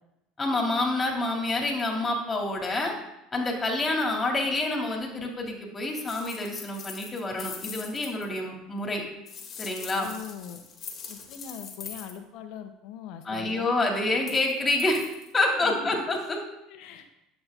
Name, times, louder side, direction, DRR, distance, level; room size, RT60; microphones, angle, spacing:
voice 1, 0.4-2.9 3.3-9.0 9.6-10.1 13.2-15.0 15.3-16.4, left 2 dB, 25° left, 1 dB, 2.8 m, -27 dB
sound 1, 6.1-8.3 9.3-12.1 14.2-14.5 14.8-15.3 16.2-16.3, left 6 dB, 45° left, 2.0 m, -42 dB
voice 2, 9.9-10.6 11.1-13.9 15.5-16.0 16.7-17.1, left 8 dB, 65° left, 8 dB, 1.2 m, -41 dB
10.5 x 7.7 x 3.8 m, 0.89 s
hypercardioid pair, 80°, 0 cm